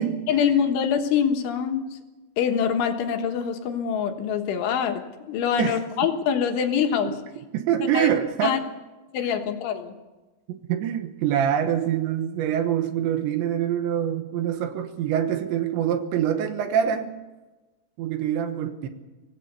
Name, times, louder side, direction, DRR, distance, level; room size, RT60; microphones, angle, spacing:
voice 1, 0.3-2.0 2.4-5.0 5.3-7.1 8.0-8.1 8.4-8.6 9.1-9.9, left 7 dB, 75° left, 5 dB, 3.7 m, -24 dB
voice 2, 7.5-8.6 10.5-17.1 18.0-18.9, right 9 dB, 70° right, 7 dB, 3.2 m, -25 dB
24.5 x 17.5 x 6.8 m, 1.2 s
omnidirectional pair, 5.8 m